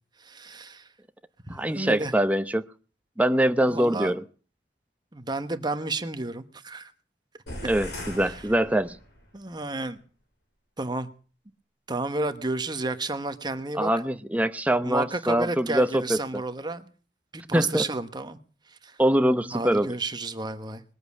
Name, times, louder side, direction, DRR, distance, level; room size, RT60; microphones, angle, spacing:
voice 1, 0.2-0.9 1.5-2.1 3.7-4.1 5.1-6.9 8.2-8.4 9.3-10.0 10.8-11.1 11.9-13.9 14.8-16.8 17.3-18.4 18.8-19.0 19.5-20.8, right 2 dB, 25° right, 1.1 m, -31 dB
voice 2, 1.5-2.7 3.2-4.2 7.6-9.0 13.8-16.2 17.5-17.9 19.0-19.9, right 1 dB, 10° right, 0.7 m, -23 dB
sound 1, 7.5-9.3, left 1 dB, 75° left, 6.1 m, -39 dB
20.5 x 8.0 x 8.3 m
head